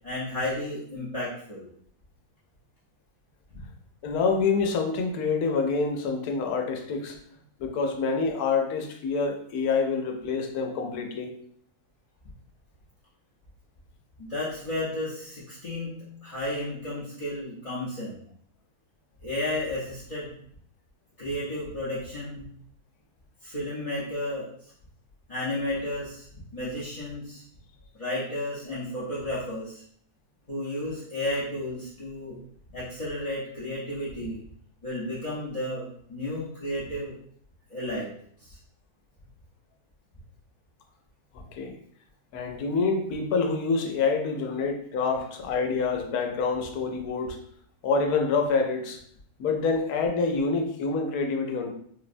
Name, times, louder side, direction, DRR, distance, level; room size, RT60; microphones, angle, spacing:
voice 1, 0.0-1.7 14.2-18.1 19.2-20.3 21.2-22.5 23.4-24.5 25.3-26.3 26.5-27.4 27.9-29.8 30.5-32.4 32.7-34.4 34.8-37.1 37.7-38.1 38.4-38.6, left 1 dB, 40° left, -10 dB, 0.5 m, -32 dB
voice 2, 4.0-7.2 7.6-11.3 41.3-41.8 42.3-47.4 47.8-49.0 49.4-51.7, left 4 dB, 80° left, 3 dB, 1.1 m, -27 dB
4.3 x 2.1 x 2.5 m, 0.63 s
omnidirectional pair, 1.6 m